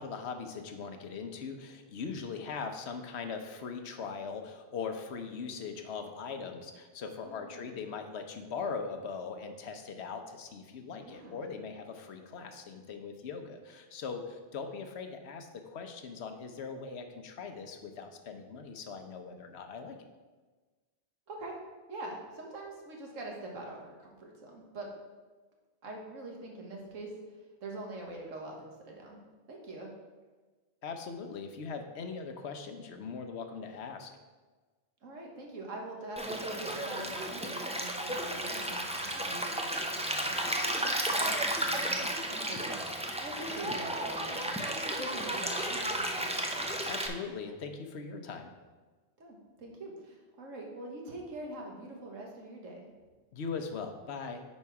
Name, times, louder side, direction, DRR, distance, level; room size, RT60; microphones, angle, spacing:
voice 1, 0.0-20.0 30.8-34.1 46.8-48.5 53.3-54.4, left 5 dB, 60° left, 6 dB, 1.0 m, -40 dB
voice 2, 7.2-7.7 10.9-11.4 21.3-21.5 21.9-24.9 25.8-27.1 27.6-29.2 29.5-29.9 35.0-42.8 43.2-46.4 49.2-52.8, right 2 dB, 85° right, 0 dB, 1.8 m, -44 dB
Stream, 36.2-47.1, right 1 dB, 10° right, 0.4 m, -33 dB
9.8 x 4.3 x 4.8 m, 1.3 s
omnidirectional pair, 1.3 m